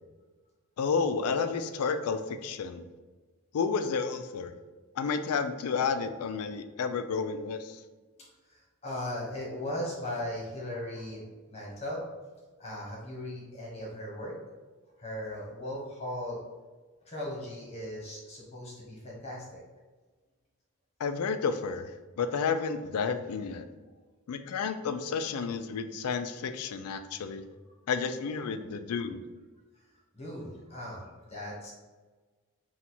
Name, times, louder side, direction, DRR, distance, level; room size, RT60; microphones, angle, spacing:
voice 1, 0.8-2.9 3.5-4.5 5.0-7.8 21.0-21.9 22.2-23.7 24.3-27.4 27.9-29.2, left 5 dB, 85° left, 9 dB, 0.4 m, -31 dB
voice 2, 8.5-12.0 12.6-14.3 15.0-16.4 17.0-19.6 30.1-31.7, left 1 dB, 30° left, -5 dB, 1.2 m, -38 dB
4.1 x 2.4 x 4.3 m, 1.3 s
head